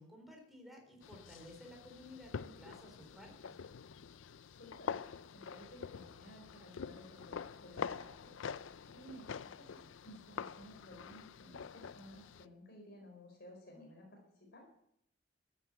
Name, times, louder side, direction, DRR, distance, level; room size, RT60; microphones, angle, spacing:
voice 1, 0.0-3.5, left 1 dB, ahead, 1 dB, 4.2 m, -54 dB
sound 1, 1.0-12.5, left 6 dB, 80° left, 0.5 m, -46 dB
voice 2, 4.5-5.0 5.3-8.3 8.9-14.7, equal, 55° left, 1 dB, 4.6 m, -55 dB
13.0 x 9.8 x 8.0 m, 0.72 s
head